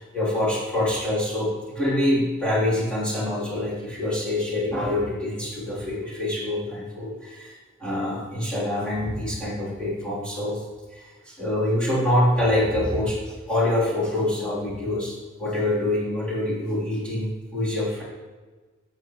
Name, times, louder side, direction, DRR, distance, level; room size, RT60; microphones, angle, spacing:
voice 1, 0.0-7.5 7.8-10.6 10.9-18.0, left 1 dB, 5° left, -8 dB, 3.4 m, -25 dB
12.5 x 7.9 x 3.1 m, 1.3 s
head